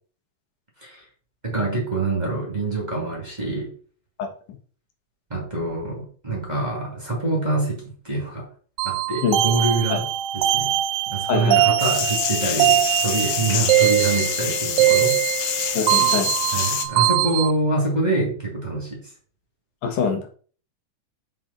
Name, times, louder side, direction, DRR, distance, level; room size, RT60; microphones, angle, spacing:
voice 1, 1.4-3.7 5.3-8.5 8.8-10.0 10.3-10.7 11.1-15.2 16.5-19.0, right 2 dB, 15° right, -2 dB, 2.7 m, -25 dB
sound 1, 8.8-17.5, right 13 dB, 80° right, 2.0 m, -22 dB
voice 2, 11.3-11.6 15.7-16.3 19.8-20.3, left 6 dB, 90° left, 4 dB, 3.0 m, -24 dB
sound 2, 11.8-16.9, left 9 dB, 65° left, 1.6 m, -26 dB
7.7 x 6.0 x 4.3 m, 0.42 s
omnidirectional pair, 3.5 m